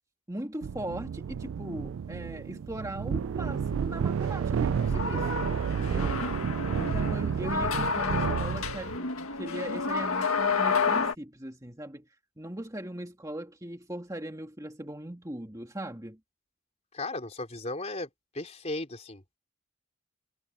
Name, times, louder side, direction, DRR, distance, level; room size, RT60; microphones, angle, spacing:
voice 1, 0.3-6.2 6.7-12.1 12.4-16.2, right 1 dB, 15° right, 2.2 m, -39 dB
sound 1, 0.6-9.0, right 7 dB, 65° right, 0.3 m, -31 dB
sound 2, 4.6-11.1, left 4 dB, 75° left, 1.8 m, -30 dB
voice 2, 16.9-18.1 18.3-19.4, left 2 dB, 30° left, 4.0 m, -36 dB
head